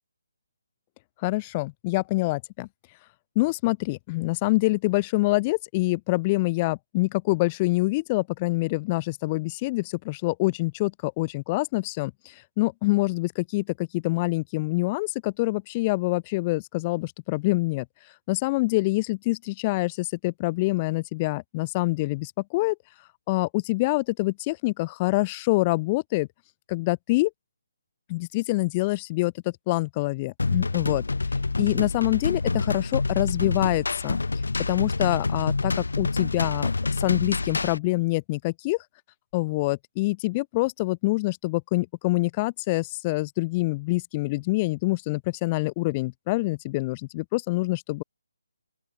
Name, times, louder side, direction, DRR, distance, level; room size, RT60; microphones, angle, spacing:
voice 1, 1.2-2.7 3.4-17.8 18.3-22.8 23.3-26.3 26.7-27.3 28.1-31.0 31.6-34.2 34.7-36.7 37.0-38.8 39.3-48.0, left 22 dB, 20° left, 0.9 m, -26 dB
sound 1, 30.4-37.8, left 3 dB, 90° left, 5.4 m, -27 dB
open air
hypercardioid pair, 170°, 0 cm